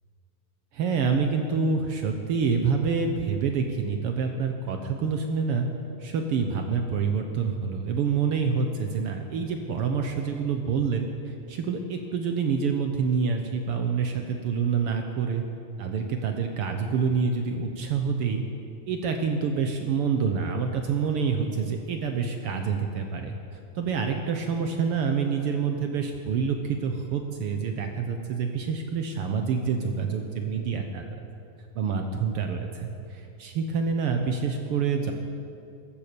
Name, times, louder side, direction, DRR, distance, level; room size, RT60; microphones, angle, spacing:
voice 1, 0.7-5.7 6.0-15.4 15.8-18.4 18.9-23.3 23.7-31.0 31.7-35.1, right 5 dB, 75° right, 4 dB, 1.3 m, -27 dB
15.0 x 13.0 x 6.8 m, 2.6 s
omnidirectional pair, 3.8 m